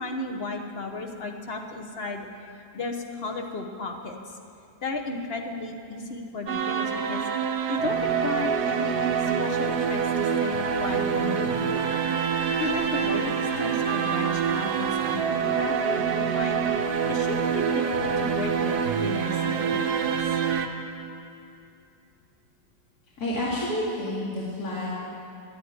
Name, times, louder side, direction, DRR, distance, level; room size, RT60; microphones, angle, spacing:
voice 1, 0.0-2.3 2.5-4.4 4.8-7.3 7.7-11.9 12.6-16.7 17.1-20.1, left 3 dB, 40° left, 3 dB, 1.2 m, -34 dB
sound 1, 6.5-20.7, right 7 dB, 80° right, 1.4 m, -26 dB
voice 2, 23.2-25.0, left 1 dB, 65° left, -7 dB, 2.8 m, -29 dB
11.0 x 10.5 x 9.6 m, 2.6 s
omnidirectional pair, 1.7 m